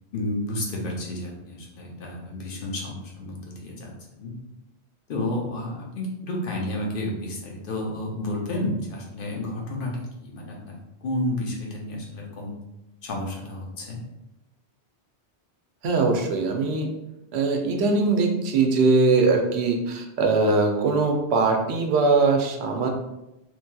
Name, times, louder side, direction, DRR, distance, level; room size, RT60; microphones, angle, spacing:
voice 1, 0.1-3.9 4.2-4.3 5.1-12.5 13.0-14.0, left 1 dB, 55° left, -2 dB, 0.8 m, -31 dB
voice 2, 15.8-16.9 17.3-22.9, right 3 dB, 75° right, 3 dB, 0.8 m, -21 dB
3.1 x 2.7 x 2.2 m, 0.92 s
omnidirectional pair, 1.1 m